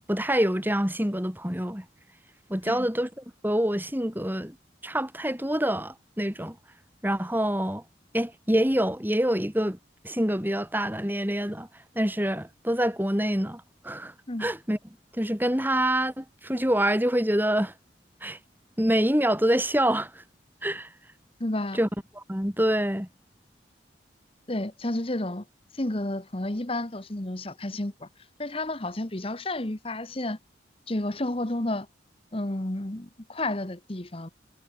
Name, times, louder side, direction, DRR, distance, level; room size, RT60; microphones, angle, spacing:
voice 1, 0.1-1.8 2.5-4.5 4.8-6.6 7.0-7.8 8.1-9.8 10.0-11.7 12.0-14.1 14.4-14.8 15.1-17.7 18.2-18.4 18.8-20.2 20.6-20.9 21.7-21.9 22.2-23.1, equal, 10° right, 4.0 m, -26 dB
voice 2, 21.4-21.8 24.5-25.4 25.7-28.1 28.4-30.4 30.9-31.9 32.3-34.3, left 1 dB, 30° left, 1.2 m, -31 dB
head